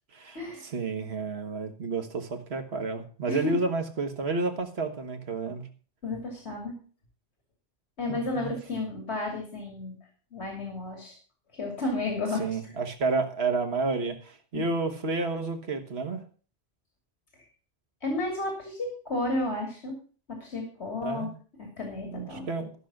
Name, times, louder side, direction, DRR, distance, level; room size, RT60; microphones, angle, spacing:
voice 1, 0.6-5.7 8.1-8.5 12.4-16.2 21.0-21.3 22.0-22.7, right 3 dB, 75° right, 7 dB, 1.7 m, -30 dB
voice 2, 6.0-6.7 8.0-9.9 10.3-11.2 11.5-12.4 14.5-14.7 18.0-19.9 20.3-21.3 21.6-22.5, left 2 dB, 85° left, 2 dB, 2.9 m, -32 dB
14.0 x 6.5 x 5.9 m, 0.39 s
omnidirectional pair, 1.1 m